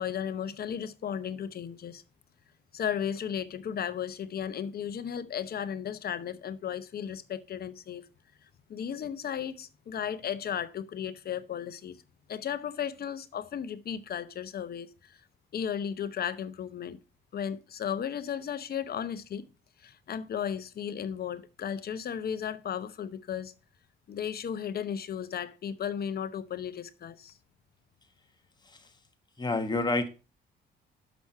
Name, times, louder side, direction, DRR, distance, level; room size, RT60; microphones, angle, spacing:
voice 1, 0.0-2.0 2.7-8.1 8.7-12.0 12.3-15.2 15.5-17.0 17.3-19.5 19.8-23.5 24.1-27.3, left 8 dB, 50° left, 0.8 m, -35 dB
voice 2, 29.4-30.1, left 2 dB, 20° left, 1.4 m, -29 dB
6.1 x 6.0 x 5.5 m
cardioid pair, 90°, 20 cm